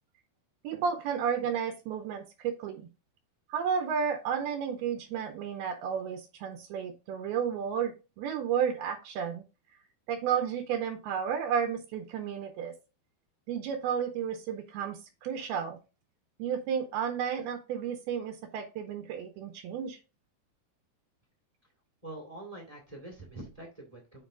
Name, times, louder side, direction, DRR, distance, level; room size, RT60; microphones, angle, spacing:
voice 1, 0.6-2.9 3.5-9.5 10.1-12.7 13.5-15.8 16.4-20.0, right 7 dB, 80° right, 6 dB, 2.6 m, -32 dB
voice 2, 22.0-24.3, right 2 dB, 20° right, 0 dB, 1.0 m, -45 dB
7.4 x 5.4 x 3.8 m, 0.30 s
omnidirectional pair, 4.7 m